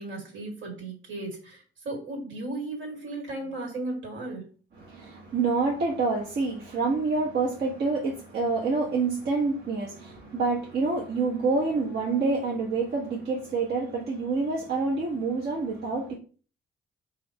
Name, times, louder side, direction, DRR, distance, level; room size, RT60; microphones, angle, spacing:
voice 1, 0.0-4.5, right 2 dB, 70° right, 1.7 m, -35 dB
voice 2, 4.8-16.1, right 3 dB, 55° right, 0.8 m, -27 dB
3.9 x 2.5 x 3.5 m
cardioid pair, 90°, 20 cm